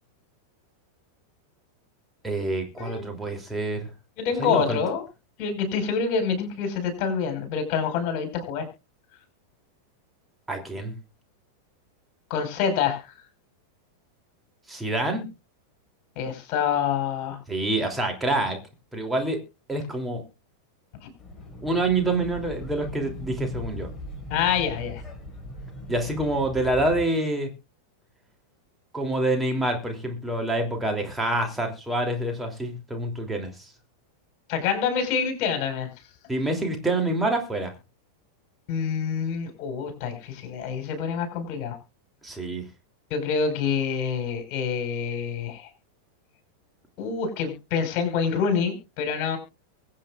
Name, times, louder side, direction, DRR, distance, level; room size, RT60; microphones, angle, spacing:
voice 1, 2.2-3.9 4.4-4.8 10.5-10.9 14.7-15.3 17.5-18.6 18.9-19.4 19.7-20.2 21.6-23.9 25.9-27.5 28.9-33.7 36.3-37.7 42.2-42.6, right 2 dB, 5° right, 2 dB, 3.2 m, -27 dB
voice 2, 4.2-5.0 5.4-8.7 12.3-13.0 16.2-17.4 21.0-21.1 24.3-25.0 34.5-35.9 38.7-41.8 43.1-45.7 47.0-49.4, left 6 dB, 40° left, 7 dB, 5.3 m, -26 dB
sound 1, 21.2-27.1, left 1 dB, 15° left, 5.9 m, -39 dB
23.5 x 8.5 x 2.5 m, 0.29 s
figure-of-eight pair, 90°, 0 cm